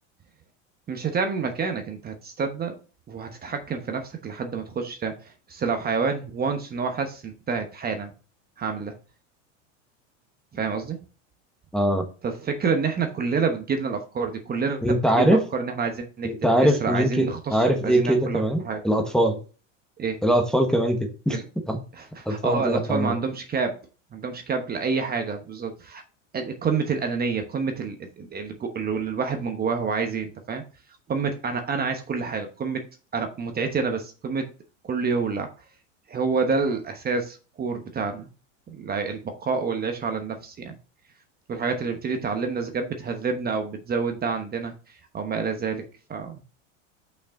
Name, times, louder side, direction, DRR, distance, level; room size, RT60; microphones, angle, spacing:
voice 1, 0.9-2.7 3.1-8.1 8.6-8.9 10.5-11.0 12.2-18.8 20.0-20.2 21.3-21.5 21.9-23.8 24.1-26.0 26.3-30.6 31.1-32.8 33.1-34.5 34.8-35.5 36.1-38.3 38.7-40.7 41.5-44.7 45.1-45.8 46.1-46.4, right 5 dB, 25° right, 6 dB, 1.1 m, -28 dB
voice 2, 11.7-12.0 14.8-15.4 16.2-19.4 20.2-21.4 21.7-21.8 22.3-23.1, equal, ahead, 3 dB, 1.2 m, -22 dB
6.4 x 5.8 x 3.8 m, 0.36 s
supercardioid pair, 110°, 38 cm